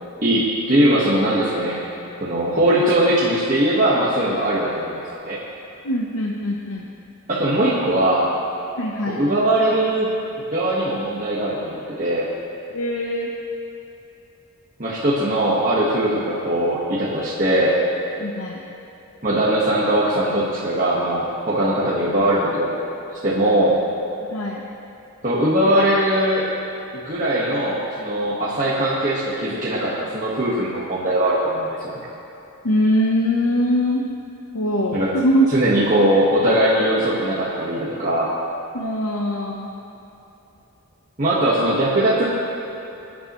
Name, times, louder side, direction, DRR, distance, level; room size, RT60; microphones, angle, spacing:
voice 1, 0.2-1.8 2.2-4.9 5.2-5.4 7.3-8.3 9.1-10.1 10.5-12.3 14.8-17.7 19.2-22.8 23.1-23.8 25.2-26.5 26.9-32.0 34.9-35.1 35.5-38.3 41.2-42.3, right 1 dB, 35° right, -8 dB, 1.5 m, -20 dB
voice 2, 5.8-6.9 8.8-9.2 12.7-13.3 18.2-18.6 24.2-24.6 32.6-34.0 34.5-35.5 38.7-39.7, equal, 70° left, -1 dB, 0.9 m, -22 dB
23.0 x 10.0 x 3.1 m, 2.9 s
head